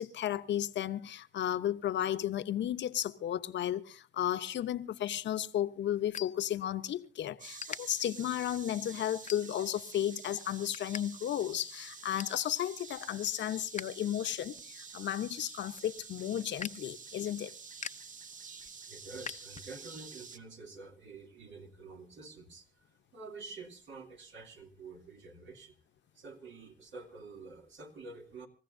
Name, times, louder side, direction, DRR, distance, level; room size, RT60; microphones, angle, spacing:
voice 1, 0.0-17.5, left 11 dB, 65° left, 0.9 m, -34 dB
sound 1, 5.1-7.1 7.6-7.8 8.4-8.6 9.3-9.8 10.2-11.0 11.3-11.4 11.8-12.4 12.9-14.0 14.3-20.0, left 7 dB, 35° left, 0.7 m, -45 dB
sound 2, 7.4-20.4, right 5 dB, 40° right, 1.0 m, -49 dB
voice 2, 18.6-25.8 26.1-28.5, right 3 dB, 70° right, 2.6 m, -49 dB
26.5 x 15.0 x 2.6 m
cardioid pair, 90°, 20 cm